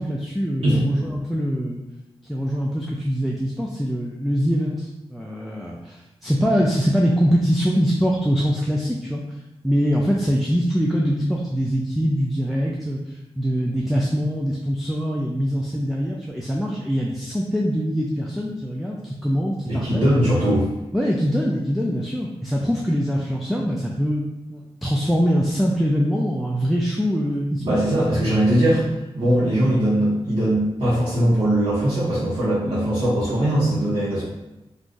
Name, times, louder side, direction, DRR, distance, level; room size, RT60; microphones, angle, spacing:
voice 1, 0.0-1.8 2.3-9.2 9.6-13.0 13.4-20.1 20.9-24.2 24.5-28.0 28.6-28.8, equal, ahead, -2 dB, 0.3 m, -23 dB
voice 2, 19.7-20.7 27.6-28.8 29.1-34.2, right 1 dB, 55° right, -12 dB, 1.0 m, -20 dB
2.5 x 2.4 x 3.7 m, 0.97 s
wide cardioid pair, 115°, 11 cm